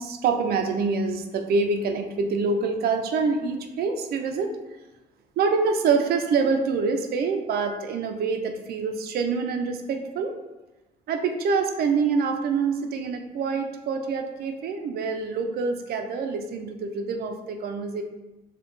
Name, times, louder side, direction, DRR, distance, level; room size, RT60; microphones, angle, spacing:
voice 1, 0.0-4.6 5.4-10.3 11.1-18.0, right 4 dB, 70° right, 6 dB, 0.5 m, -26 dB
5.0 x 2.4 x 3.2 m, 1.1 s
cardioid pair, 100°, 17 cm